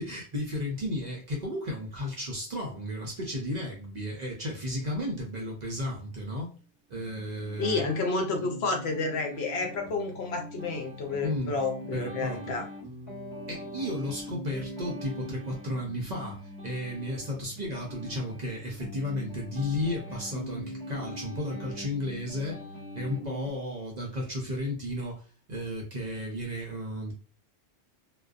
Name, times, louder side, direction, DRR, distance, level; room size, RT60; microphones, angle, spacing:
voice 1, 0.0-6.6 6.9-7.8 11.2-11.5 11.9-12.5 13.5-22.6 22.9-27.1, left 1 dB, 50° right, 0.6 m, -33 dB
sound 1, 6.9-23.5, equal, 20° left, 1.0 m, -42 dB
voice 2, 7.6-12.7, left 3 dB, 70° left, 0.9 m, -30 dB
2.5 x 2.2 x 2.3 m
omnidirectional pair, 1.2 m